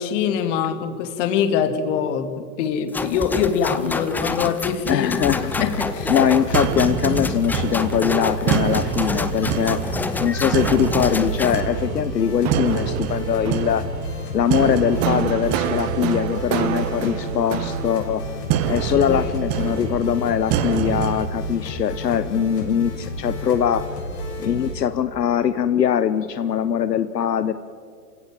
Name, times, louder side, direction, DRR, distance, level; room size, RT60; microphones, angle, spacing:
voice 1, 0.0-5.1 5.4-6.1 6.9-7.0 18.9-19.3, left 7 dB, 50° left, 9 dB, 2.4 m, -24 dB
sound 1, 2.9-11.6, left 3 dB, 5° left, 0.5 m, -28 dB
voice 2, 4.9-5.7 6.1-9.9 10.2-13.8 14.3-18.2 18.7-23.8 24.4-27.5, left 9 dB, 85° left, 12 dB, 1.0 m, -22 dB
sound 2, 5.3-24.7, left 1 dB, 70° left, 6.6 m, -31 dB
sound 3, 6.5-21.3, right 10 dB, 30° right, 1.3 m, -26 dB
27.0 x 16.5 x 7.5 m, 2.2 s
hypercardioid pair, 115°, 48 cm